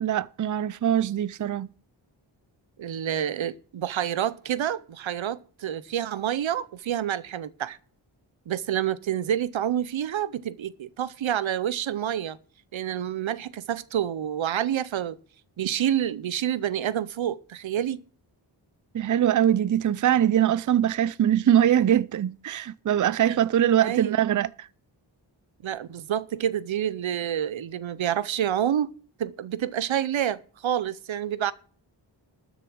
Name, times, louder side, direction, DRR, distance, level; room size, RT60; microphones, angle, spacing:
voice 1, 0.0-1.7 18.9-24.7, right 10 dB, 45° right, 0.5 m, -22 dB
voice 2, 2.8-7.8 8.5-12.4 12.7-15.2 15.6-18.0 23.3-23.4 23.8-24.1 25.6-28.9 29.2-31.5, right 10 dB, 85° right, 0.7 m, -28 dB
13.0 x 7.1 x 6.2 m
wide cardioid pair, 65°, 46 cm